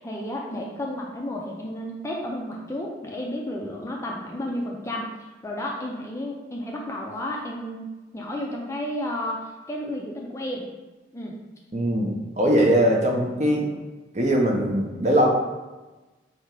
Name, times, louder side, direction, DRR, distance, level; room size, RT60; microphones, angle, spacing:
voice 1, 0.0-5.1 5.4-7.9 8.1-10.7 11.1-11.4, left 1 dB, 15° left, -1 dB, 0.4 m, -32 dB
voice 2, 11.7-13.7 14.1-15.3, equal, 35° right, 0 dB, 0.6 m, -21 dB
3.4 x 2.8 x 4.7 m, 1.2 s
head